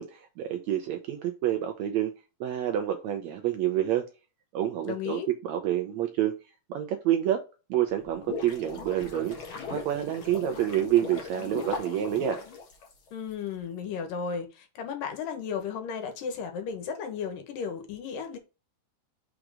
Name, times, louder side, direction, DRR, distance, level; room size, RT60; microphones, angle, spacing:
voice 1, 0.0-2.1 2.4-4.1 4.5-6.4 6.7-7.4 7.7-9.4 9.7-12.4, right 11 dB, 80° right, 1.7 m, -28 dB
voice 2, 4.8-5.3 13.1-18.4, left 6 dB, 85° left, 2.9 m, -34 dB
sound 1, 7.9-13.3, left 4 dB, 50° left, 1.9 m, -39 dB
6.1 x 3.8 x 4.9 m
omnidirectional pair, 3.8 m